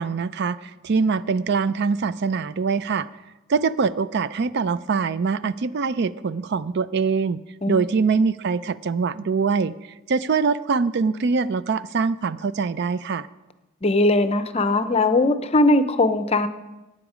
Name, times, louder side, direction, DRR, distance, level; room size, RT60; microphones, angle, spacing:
voice 1, 0.0-3.1 3.5-7.4 7.7-9.7 10.1-13.3, right 5 dB, 55° right, 16 dB, 0.4 m, -23 dB
voice 2, 13.8-16.5, left 2 dB, 30° left, 11 dB, 0.6 m, -20 dB
15.0 x 9.7 x 5.0 m, 1.0 s
head